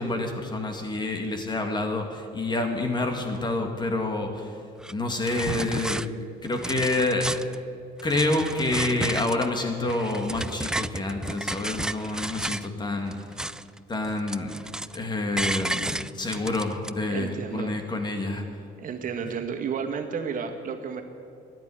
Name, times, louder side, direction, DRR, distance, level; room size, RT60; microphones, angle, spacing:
voice 1, 0.0-4.6 4.9-6.0 6.4-7.3 8.0-13.1 13.9-14.5 14.9-18.4, left 2 dB, 25° left, 4 dB, 2.3 m, -28 dB
sound 1, 4.8-4.9 5.3-6.1 6.5-7.6 8.0-9.5 9.9-12.7 13.1-13.8 14.0-15.0 15.4-16.9, right 1 dB, 5° right, 0.3 m, -32 dB
voice 2, 17.1-17.7 18.8-21.0, right 6 dB, 55° right, 4 dB, 1.8 m, -32 dB
14.0 x 11.0 x 9.6 m, 2.5 s
cardioid pair, 110°, 17 cm